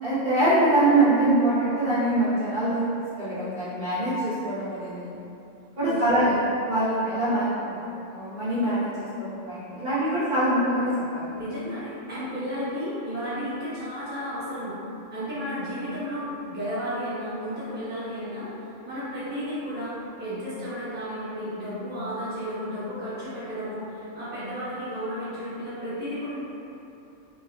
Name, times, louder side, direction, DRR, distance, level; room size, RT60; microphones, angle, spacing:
voice 1, 0.0-5.1 5.8-6.3 6.7-7.8 8.1-11.3, right 1 dB, 50° right, -13 dB, 1.4 m, -24 dB
voice 2, 5.9-6.4 11.3-14.7 15.1-18.5 18.8-26.4, equal, 10° right, -13 dB, 1.1 m, -33 dB
5.3 x 2.9 x 2.4 m, 2.9 s
omnidirectional pair, 1.3 m